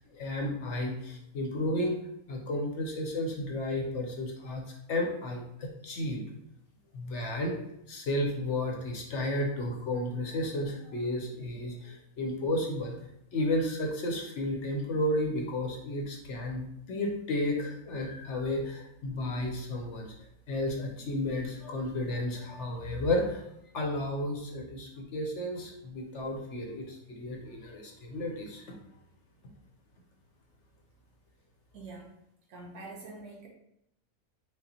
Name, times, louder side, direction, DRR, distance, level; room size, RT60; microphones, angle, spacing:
voice 1, 0.1-2.0 2.3-4.6 4.9-6.2 6.9-7.6 7.9-13.0 13.3-20.1 20.5-23.4 23.7-28.6, left 1 dB, 60° left, 1 dB, 0.9 m, -32 dB
voice 2, 31.7-32.1 32.5-33.5, right 3 dB, 85° right, 0 dB, 1.5 m, -45 dB
5.2 x 2.1 x 4.2 m, 0.78 s
omnidirectional pair, 1.6 m